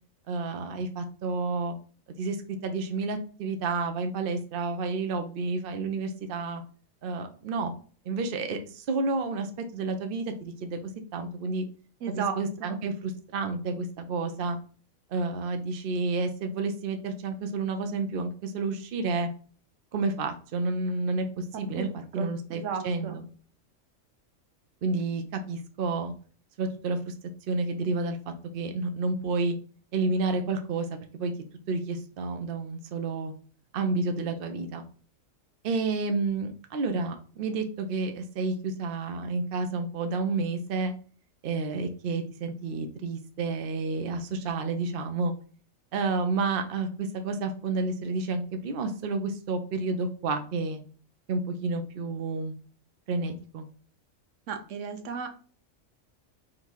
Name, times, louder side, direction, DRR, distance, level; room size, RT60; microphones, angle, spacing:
voice 1, 0.3-1.8 2.2-2.4 2.6-6.6 7.0-7.7 8.1-10.8 11.1-11.6 12.1-14.6 15.1-19.3 19.9-21.9 22.1-23.2 24.8-26.1 26.6-27.1 27.5-28.2 28.5-29.6 29.9-31.3 31.7-33.3 33.7-34.8 35.6-40.9 41.4-45.3 45.9-50.8 51.3-52.6 53.1-53.7, right 3 dB, 55° right, 6 dB, 0.7 m, -30 dB
voice 2, 12.0-12.8 21.5-23.2 54.5-55.3, right 6 dB, 70° right, 6 dB, 1.0 m, -35 dB
3.7 x 2.7 x 4.6 m, 0.41 s
omnidirectional pair, 1.4 m